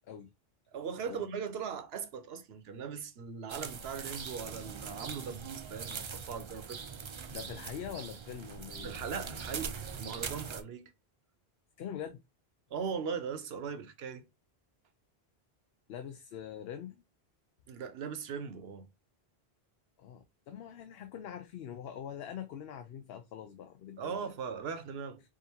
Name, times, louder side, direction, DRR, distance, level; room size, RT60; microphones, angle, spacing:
voice 1, 0.7-6.8 8.8-10.9 12.7-14.2 17.7-18.9 24.0-25.2, right 6 dB, 75° right, 0.9 m, -39 dB
sound 1, 3.5-10.6, right 5 dB, 50° right, 0.3 m, -42 dB
voice 2, 7.3-9.0 11.8-12.2 15.9-17.0 20.0-24.2, left 9 dB, 75° left, 0.8 m, -43 dB
4.9 x 2.6 x 2.7 m
omnidirectional pair, 1.1 m